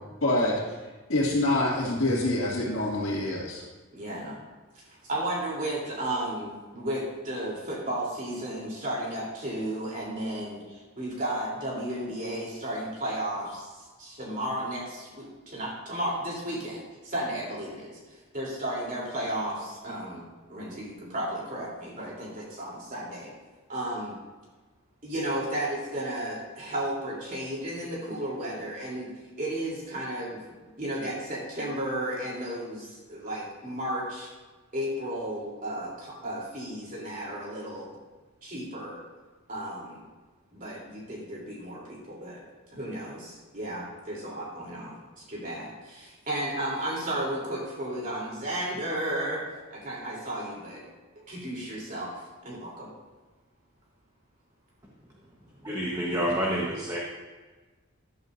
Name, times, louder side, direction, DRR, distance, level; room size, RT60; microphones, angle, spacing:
voice 1, 0.2-0.6 1.1-3.6, left 1 dB, 65° left, -8 dB, 2.3 m, -26 dB
voice 2, 3.9-4.4 4.7-20.2 20.5-23.3 23.7-24.1 25.0-29.1 29.4-30.4 30.8-34.3 34.7-37.9 38.4-39.0 39.5-40.0 40.5-42.4 42.7-49.4 49.7-50.8 51.2-52.1 52.4-52.9, right 1 dB, 40° right, -4 dB, 3.5 m, -33 dB
voice 3, 55.6-57.0, equal, 15° right, -4 dB, 1.2 m, -28 dB
14.0 x 11.0 x 2.7 m, 1.3 s
head